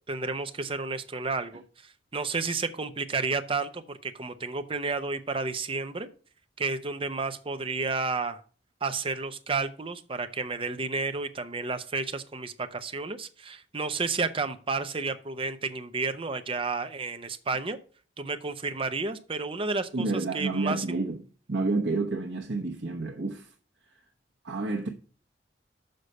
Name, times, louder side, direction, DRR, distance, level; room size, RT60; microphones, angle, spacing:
voice 1, 0.1-6.1 6.6-8.4 8.8-17.8 18.2-20.1 20.3-20.8, right 4 dB, 30° right, 0.8 m, -31 dB
voice 2, 19.9-21.2 21.5-23.5 23.9-24.0 24.4-24.9, right 3 dB, 80° right, 1.0 m, -29 dB
6.6 x 5.6 x 6.5 m
head